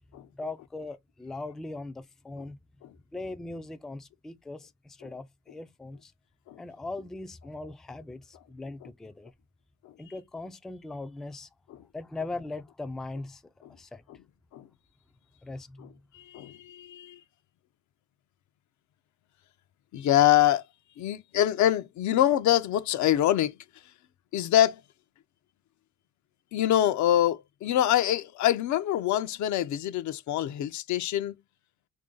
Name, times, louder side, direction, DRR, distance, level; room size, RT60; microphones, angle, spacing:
voice 1, 0.3-2.6 3.1-6.1 6.6-9.3 10.0-11.5 11.9-14.0 15.4-15.9, left 2 dB, ahead, 0.3 m, -40 dB
voice 2, 16.1-17.2 19.9-20.6 21.0-23.6 24.3-24.8 26.5-31.3, left 12 dB, 70° left, 0.5 m, -25 dB
3.0 x 2.6 x 3.6 m
cardioid pair, 90°, 30 cm